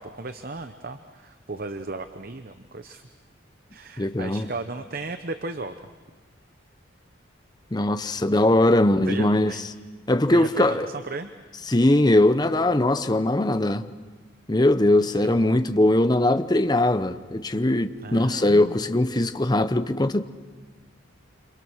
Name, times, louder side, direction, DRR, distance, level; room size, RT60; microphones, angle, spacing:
voice 1, 0.0-3.0 3.7-5.7 8.2-8.7 9.1-9.6 10.3-11.3 15.2-15.6 18.0-18.8, right 3 dB, 45° right, 9 dB, 0.9 m, -35 dB
voice 2, 4.0-4.5 7.7-9.5 10.1-10.9 11.7-13.8 14.5-20.2, left 1 dB, 20° left, 10 dB, 0.7 m, -20 dB
29.0 x 26.5 x 6.3 m, 1.4 s
head